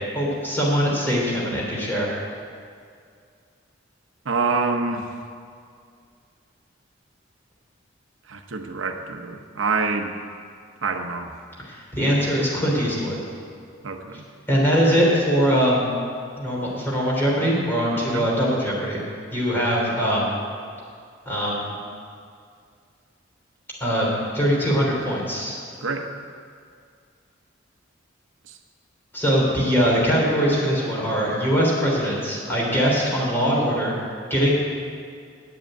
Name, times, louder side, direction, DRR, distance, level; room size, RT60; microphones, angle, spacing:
voice 1, 0.1-2.1 11.7-13.2 14.5-15.9 16.4-19.0 19.3-20.4 21.2-21.7 23.8-25.6 29.1-33.9 34.3-34.5, equal, 10° left, -5 dB, 3.2 m, -22 dB
voice 2, 4.2-5.1 8.3-10.1 10.8-11.3 13.8-14.2 17.9-18.3 25.8-26.1 28.5-28.6, right 4 dB, 85° right, 5 dB, 0.8 m, -26 dB
8.7 x 7.9 x 9.2 m, 2.3 s
head